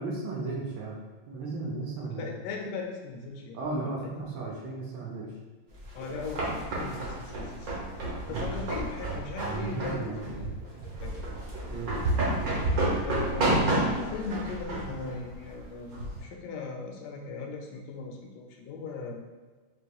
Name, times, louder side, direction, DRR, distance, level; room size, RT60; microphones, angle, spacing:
voice 1, 0.0-2.3 3.5-5.3 8.3-8.5 9.4-10.9 11.7-12.0, right 3 dB, 75° right, -2 dB, 1.4 m, -35 dB
voice 2, 2.1-4.3 5.9-7.7 8.3-10.4 11.0-11.2 13.0-19.2, left 4 dB, 70° left, 2 dB, 1.1 m, -38 dB
sound 1, 5.8-16.2, right 1 dB, 55° right, 1.3 m, -30 dB
4.6 x 2.8 x 2.2 m, 1.3 s
omnidirectional pair, 2.2 m